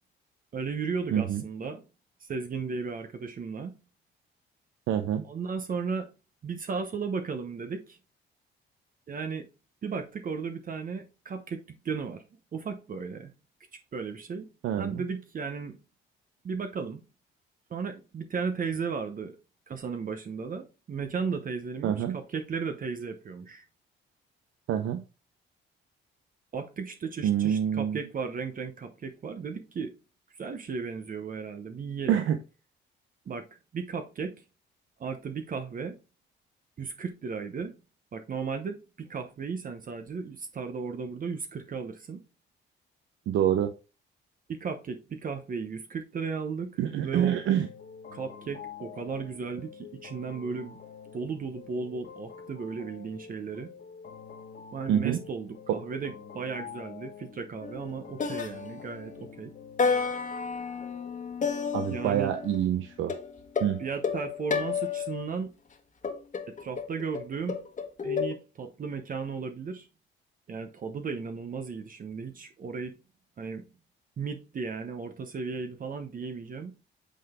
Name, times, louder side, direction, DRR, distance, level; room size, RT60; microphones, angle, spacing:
voice 1, 0.5-1.8 2.2-3.7 5.3-6.1 6.4-8.0 9.1-9.5 9.8-12.2 12.5-13.3 13.9-14.5 14.8-15.8 16.4-17.0 17.7-19.4 19.7-23.6 26.5-29.9 30.3-32.2 33.3-33.5 33.7-34.4 35.0-36.0 36.8-37.7 38.1-42.2 44.5-46.7 47.0-47.4 48.1-50.8 51.1-53.7 54.7-59.5 61.9-62.3 63.8-65.5 66.5-67.6 68.0-69.9 70.5-72.9 73.4-73.6 74.2-76.8, right 5 dB, 45° right, 0.9 m, -35 dB
voice 2, 1.1-1.4 4.9-5.2 14.6-15.0 21.8-22.1 24.7-25.0 27.2-28.0 32.1-32.4 43.3-43.7 46.8-47.7 54.9-55.2 55.7-55.8 61.7-63.2 63.6-63.8, right 10 dB, 80° right, 0.7 m, -26 dB
sound 1, 47.3-61.8, left 6 dB, 60° left, 1.6 m, -47 dB
sound 2, 57.6-57.9 58.2-59.2 59.8-62.6 63.1-65.2 66.0-68.3, left 5 dB, 40° left, 1.4 m, -31 dB
8.4 x 3.9 x 3.6 m
cardioid pair, 90°, 20 cm